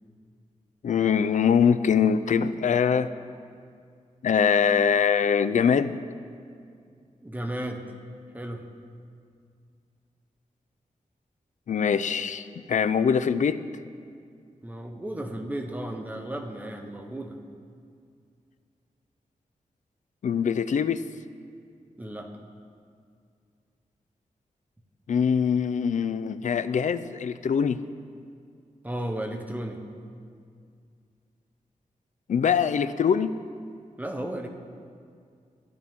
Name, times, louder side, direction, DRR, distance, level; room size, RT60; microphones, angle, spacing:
voice 1, 0.8-3.1 4.2-5.9 11.7-13.6 20.2-21.0 25.1-27.8 32.3-33.3, left 7 dB, 65° left, 13 dB, 0.4 m, -23 dB
voice 2, 7.2-7.8 8.3-8.6 14.6-17.4 22.0-22.3 28.8-29.8 34.0-34.5, right 1 dB, 10° right, 3 dB, 0.9 m, -34 dB
14.5 x 11.0 x 3.6 m, 2.3 s
wide cardioid pair, 125°, 14 cm